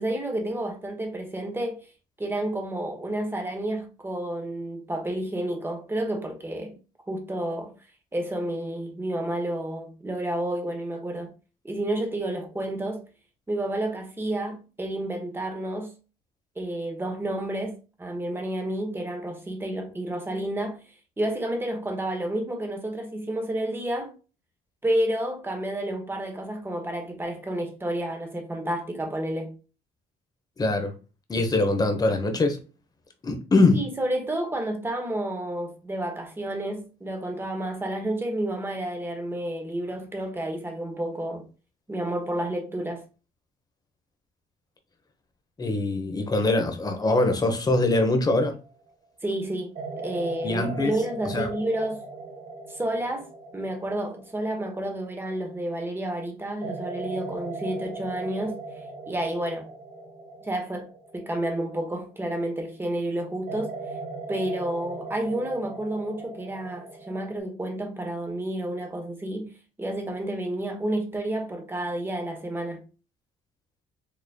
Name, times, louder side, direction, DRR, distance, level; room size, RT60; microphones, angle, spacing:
voice 1, 0.0-1.8 2.2-6.7 7.1-7.7 8.1-11.3 11.6-13.0 13.5-15.9 16.6-20.8 21.2-24.1 24.8-29.5 33.7-41.5 41.9-43.0 49.2-52.0 52.7-53.3 53.5-58.6 59.1-59.7 60.4-60.9 61.1-63.7 64.3-69.5 69.8-72.8, right 1 dB, 15° right, 1.2 m, -30 dB
voice 2, 30.6-30.9 31.3-32.6 33.2-33.8 45.6-48.5 50.4-50.9 51.3-51.5, left 2 dB, 25° left, 0.9 m, -23 dB
sound 1, 48.5-48.8 49.7-55.7 56.6-62.6 63.5-67.4, right 3 dB, 50° right, 1.1 m, -39 dB
5.1 x 3.1 x 2.3 m
cardioid pair, 110°, 17 cm